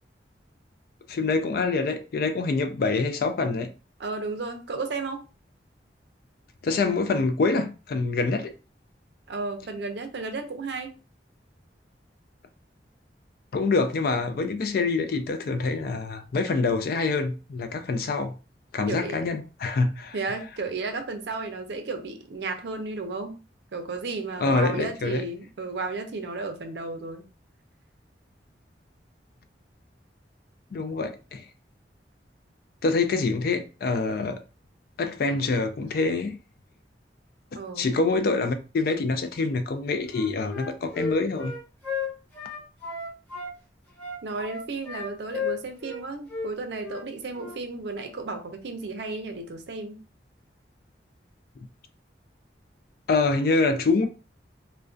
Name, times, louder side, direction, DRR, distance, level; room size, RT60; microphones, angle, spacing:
voice 1, 1.1-3.7 6.6-8.5 13.5-18.4 18.7-20.2 24.4-25.2 30.7-31.4 32.8-34.4 35.0-36.4 37.8-41.5 53.1-54.1, left 3 dB, 55° left, 0.3 m, -25 dB
voice 2, 4.0-5.2 9.3-10.9 18.9-19.3 20.1-23.4 23.7-27.3 37.6-38.0 44.2-50.0, right 3 dB, 70° right, 0.5 m, -33 dB
Wind instrument woodwind instrument, 40.1-43.5 44.0-46.0 46.3-46.5 46.8-47.0 47.3-47.6, left 4 dB, 10° left, 0.7 m, -34 dB
2.3 x 2.2 x 2.4 m
head